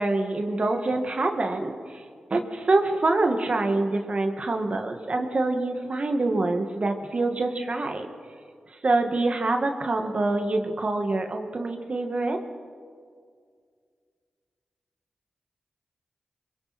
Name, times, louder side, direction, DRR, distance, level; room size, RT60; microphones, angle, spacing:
voice 1, 0.0-2.0 2.3-8.1 8.8-12.4, right 2 dB, 50° right, 4 dB, 2.0 m, -25 dB
27.0 x 22.0 x 4.4 m, 2.1 s
cardioid pair, 50°, 3 cm